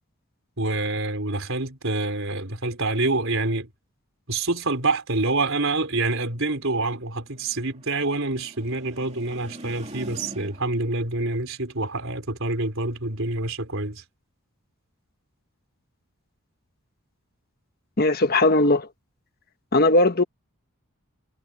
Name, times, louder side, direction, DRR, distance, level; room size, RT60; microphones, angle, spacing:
voice 1, 0.6-3.7 4.3-14.0, right 2 dB, 60° right, 4.4 m, -26 dB
sound 1, 6.2-10.9, right 1 dB, 30° right, 2.8 m, -45 dB
voice 2, 18.0-18.9 19.7-20.2, left 2 dB, 45° left, 1.3 m, -18 dB
head